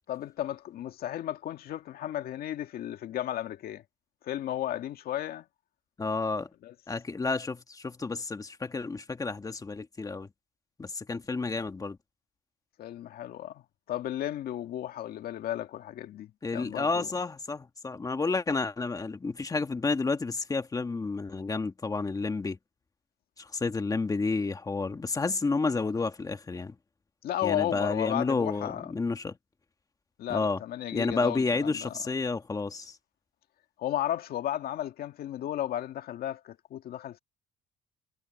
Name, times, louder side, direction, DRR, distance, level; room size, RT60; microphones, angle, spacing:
voice 1, 0.1-3.8 4.2-5.5 6.6-6.7 12.8-13.6 13.9-17.1 27.2-28.9 30.2-32.0 33.8-37.2, left 12 dB, 65° left, 2.0 m, -34 dB
voice 2, 6.0-6.5 6.9-10.3 10.8-12.0 16.4-22.6 23.4-26.7 27.4-29.4 30.3-30.6 30.9-33.0, left 3 dB, 20° left, 1.6 m, -30 dB
cardioid pair, 110°, 17 cm